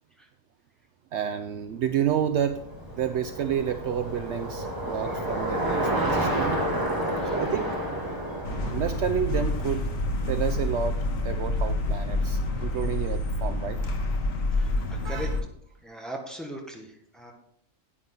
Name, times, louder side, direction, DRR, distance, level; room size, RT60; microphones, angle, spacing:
voice 1, 1.1-2.6 2.9-6.6 7.3-7.7 8.6-9.8 10.3-11.0 11.2-13.8 15.0-15.3, right 9 dB, 65° right, 9 dB, 0.8 m, -29 dB
Bicycle, 1.9-10.2, right 1 dB, 15° right, 2.1 m, -30 dB
sound 1, 8.4-15.4, left 2 dB, 85° left, 1.5 m, -28 dB
voice 2, 14.5-15.3 15.8-17.3, right 1 dB, ahead, 1 dB, 1.5 m, -39 dB
9.8 x 9.2 x 3.9 m, 0.71 s
omnidirectional pair, 1.4 m